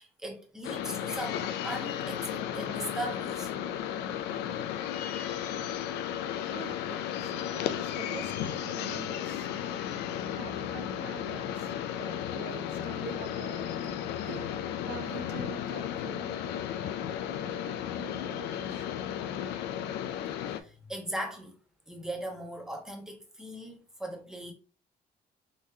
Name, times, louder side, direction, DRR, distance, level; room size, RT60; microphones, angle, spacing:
voice 1, 0.0-3.5 20.4-21.6 21.9-24.5, right 1 dB, 5° right, 1.0 m, -39 dB
sound 1, 0.6-20.6, left 10 dB, 80° left, 0.4 m, -34 dB
voice 2, 5.9-19.5, right 7 dB, 75° right, 0.8 m, -47 dB
3.7 x 3.1 x 2.7 m
cardioid pair, 110°, 17 cm